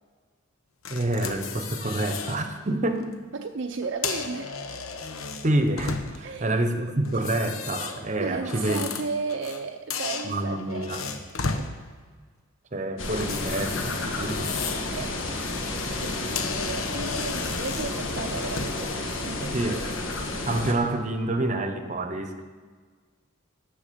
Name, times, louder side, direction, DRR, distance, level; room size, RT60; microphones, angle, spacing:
sound 1, 0.9-2.4 2.8-3.1 3.8-6.4 7.1-9.6 9.9-11.7 13.1-14.9 15.3-15.6 16.0-16.1 16.4-18.9, left 5 dB, 85° left, 1.0 m, -34 dB
voice 1, 0.9-3.1 5.4-8.8 10.2-11.0 12.7-14.5 19.4-19.8 20.4-22.4, right 1 dB, 35° right, 8 dB, 0.9 m, -27 dB
voice 2, 3.3-4.6 6.2-6.5 8.2-11.7 14.9-15.1 15.7-20.0, right 4 dB, 60° right, 5 dB, 0.5 m, -35 dB
sound 2, 13.0-20.7, left 2 dB, 70° left, 1.4 m, -31 dB
10.5 x 7.1 x 6.9 m, 1.5 s
head